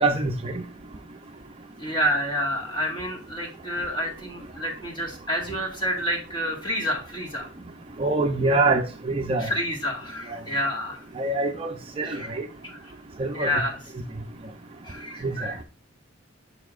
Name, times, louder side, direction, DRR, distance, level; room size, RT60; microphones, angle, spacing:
voice 1, 0.0-0.6 8.0-9.5 11.2-12.4 13.2-13.6 15.2-15.5, right 2 dB, 30° right, 0.5 m, -25 dB
voice 2, 1.8-7.5 9.4-11.1 12.0-12.4 12.6-12.9 13.3-13.8 14.8-15.6, equal, 25° left, 1.8 m, -29 dB
6.9 x 6.4 x 2.5 m
head